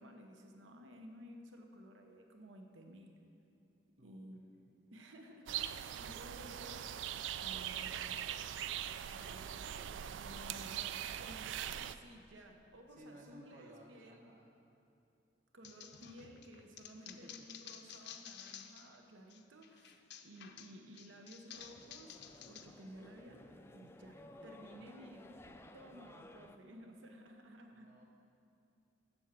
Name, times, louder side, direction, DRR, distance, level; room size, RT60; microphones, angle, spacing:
voice 1, 0.0-3.1 4.0-4.4 4.9-6.9 7.4-8.0 9.1-9.8 10.1-14.4 15.5-22.2 22.4-27.9, equal, 90° right, 4 dB, 0.9 m, -55 dB
sound 1, 5.5-12.0, right 10 dB, 75° right, 0.3 m, -41 dB
voice 2, 13.0-14.4 17.1-17.3 27.7-28.1, right 1 dB, 40° right, -3 dB, 0.8 m, -57 dB
sound 2, 15.6-19.0 19.3-22.7, left 8 dB, 60° left, 0.6 m, -53 dB
sound 3, 21.5-26.5, left 2 dB, 15° left, 0.3 m, -57 dB
7.9 x 7.1 x 7.3 m, 2.6 s
head